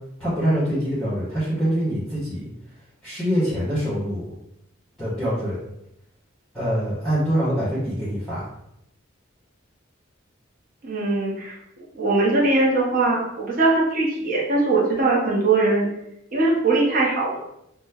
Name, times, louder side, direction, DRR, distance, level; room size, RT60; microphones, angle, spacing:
voice 1, 0.2-2.5 3.0-4.3 5.0-5.6 6.5-8.5, equal, 5° left, -12 dB, 1.0 m, -24 dB
voice 2, 10.8-11.6 11.9-15.9 16.3-17.4, right 2 dB, 45° right, -4 dB, 0.6 m, -21 dB
5.0 x 2.0 x 2.3 m, 0.80 s
head